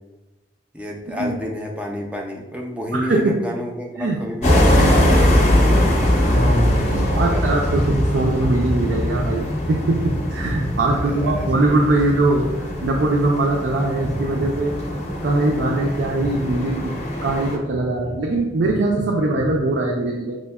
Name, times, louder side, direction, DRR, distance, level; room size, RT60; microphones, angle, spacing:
voice 1, 0.7-6.1 6.9-7.4 11.0-11.6 19.2-19.3, equal, 5° right, 0 dB, 0.4 m, -30 dB
voice 2, 2.9-3.4 4.0-4.2 6.3-14.7 15.2-20.4, right 2 dB, 70° right, 0 dB, 0.4 m, -21 dB
sound 1, 4.4-17.6, left 1 dB, 35° left, 0.6 m, -21 dB
6.1 x 2.1 x 2.3 m, 1.1 s
head